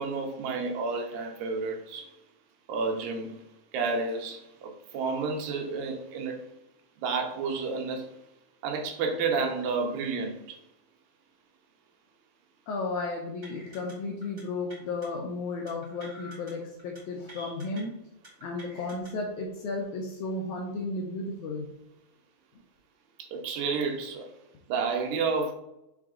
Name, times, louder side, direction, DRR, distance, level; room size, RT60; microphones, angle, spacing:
voice 1, 0.0-2.1 2.7-3.4 3.7-6.4 7.0-8.1 8.6-10.6 23.2-24.3 24.7-25.5, right 4 dB, 85° right, 3 dB, 2.4 m, -30 dB
voice 2, 12.7-18.0 18.4-21.8, left 3 dB, 80° left, 0 dB, 1.8 m, -34 dB
sound 1, 13.4-13.9 14.2-14.4 14.7-15.1 15.7-16.5 16.8-17.0 17.3-17.8 18.2-19.1, right 1 dB, 35° right, 0.9 m, -48 dB
5.8 x 2.5 x 3.6 m, 0.86 s
omnidirectional pair, 4.0 m